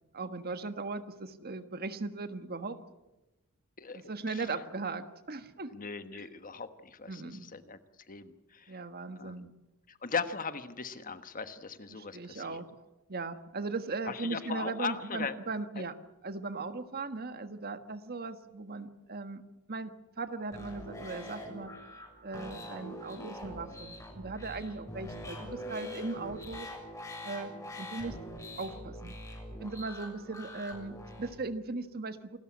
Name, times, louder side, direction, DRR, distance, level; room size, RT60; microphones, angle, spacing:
voice 1, 0.1-2.8 3.9-5.7 7.1-7.5 8.7-9.5 11.9-12.7 13.1-15.9 16.2-19.4 19.7-21.7 22.2-26.7 27.2-27.5 27.8-28.2 28.6-29.1 29.6-32.4, right 3 dB, 45° right, 10 dB, 1.5 m, -38 dB
voice 2, 3.8-4.4 5.7-7.8 8.1-8.8 9.2-9.5 9.9-12.6 14.1-15.4 15.8-15.9 25.6-26.0, left 5 dB, 40° left, 10 dB, 1.3 m, -39 dB
sound 1, 20.5-31.3, equal, 15° left, 7.1 m, -44 dB
28.0 x 13.5 x 9.8 m, 1.0 s
head